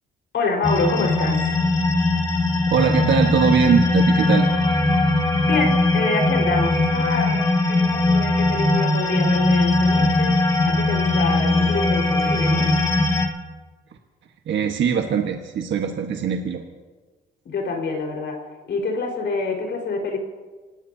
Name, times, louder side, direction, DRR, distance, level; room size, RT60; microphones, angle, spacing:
voice 1, 0.3-1.6 5.4-7.4 7.7-10.4 10.6-12.7 17.4-20.2, left 3 dB, 65° left, 1 dB, 4.6 m, -26 dB
sound 1, 0.6-13.3, left 2 dB, 15° left, 2.3 m, -20 dB
voice 2, 2.7-4.5 14.5-16.6, right 7 dB, 70° right, 3 dB, 1.4 m, -21 dB
27.0 x 19.0 x 2.8 m, 1.4 s
cardioid pair, 90°, 20 cm